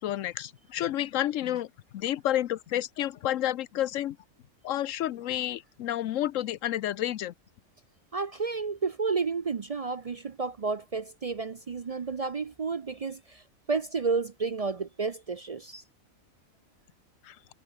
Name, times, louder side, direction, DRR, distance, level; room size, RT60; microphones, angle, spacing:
voice 1, 0.0-4.2 4.6-7.3 17.2-17.4, left 12 dB, 75° left, 1.0 m, -30 dB
voice 2, 8.1-15.8, right 4 dB, 50° right, 0.4 m, -31 dB
omnidirectional pair, 1.4 m